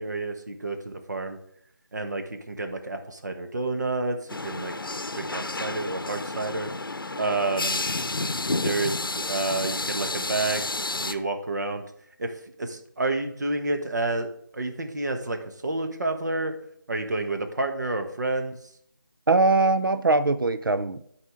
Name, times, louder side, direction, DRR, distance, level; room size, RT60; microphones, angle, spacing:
voice 1, 0.0-1.4 1.9-4.2 4.4-4.7 5.2-6.7 7.1-7.8 8.6-10.6 11.0-11.8 12.2-12.3 12.6-14.3 14.5-15.4 15.6-16.5 16.9-18.6, right 2 dB, 55° right, 6 dB, 1.3 m, -29 dB
sound 1, 4.3-11.1, left 2 dB, 85° left, 0.7 m, -30 dB
voice 2, 19.3-21.1, right 3 dB, 80° right, 13 dB, 0.6 m, -22 dB
12.0 x 4.9 x 3.7 m, 0.70 s
figure-of-eight pair, 165°, 11 cm